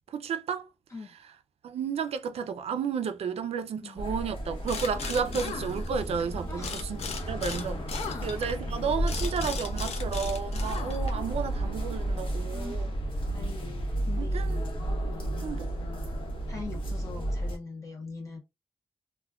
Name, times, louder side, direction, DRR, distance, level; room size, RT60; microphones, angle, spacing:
voice 1, 0.1-0.7 1.6-7.0 7.3-7.8 8.2-12.9 14.2-14.6 15.4-15.7, right 6 dB, 75° right, 0.4 m, -32 dB
sound 1, 4.0-17.6, right 1 dB, 55° left, 0.8 m, -32 dB
sound 2, 4.7-6.2 6.6-11.3, left 6 dB, 85° left, 0.5 m, -38 dB
voice 2, 6.5-6.8 8.0-8.4 12.5-12.9 13.3-14.5 16.5-18.4, left 4 dB, 30° left, 0.5 m, -42 dB
3.4 x 2.1 x 2.2 m
wide cardioid pair, 180°, 10 cm